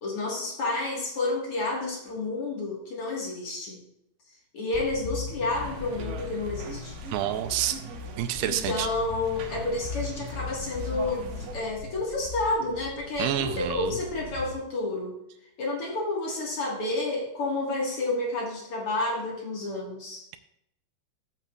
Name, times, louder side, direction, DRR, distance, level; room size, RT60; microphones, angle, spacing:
voice 1, 0.0-3.8 4.5-7.0 8.4-15.2 15.6-20.3, left 2 dB, 55° left, -2 dB, 1.5 m, -30 dB
sound 1, 4.7-14.5, left 4 dB, 80° left, 3.9 m, -39 dB
sound 2, 5.5-11.6, right 4 dB, 70° right, 2.9 m, -43 dB
voice 2, 7.1-7.8 8.2-8.9 13.2-14.0, right 12 dB, 85° right, 9 dB, 2.3 m, -28 dB
15.0 x 8.2 x 2.4 m, 0.82 s
omnidirectional pair, 5.1 m